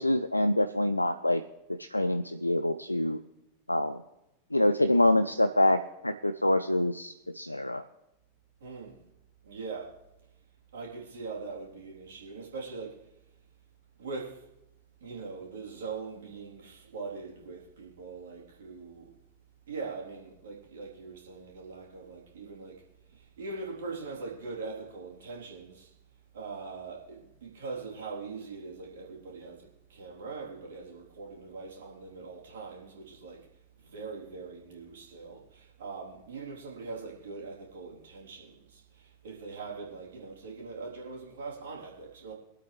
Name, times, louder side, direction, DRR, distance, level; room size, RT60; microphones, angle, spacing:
voice 1, 0.0-1.4 1.8-3.2 3.7-4.0 4.5-5.8 6.0-7.8, left 1 dB, 85° left, 0.4 m, -26 dB
voice 2, 8.6-9.0 9.4-10.0 10.7-13.0 14.0-14.4 15.0-19.1 19.7-22.8 23.1-25.9 26.3-33.5 33.8-42.3, right 4 dB, 60° right, 3.7 m, -42 dB
23.5 x 8.4 x 3.4 m
figure-of-eight pair, 90°, 0 cm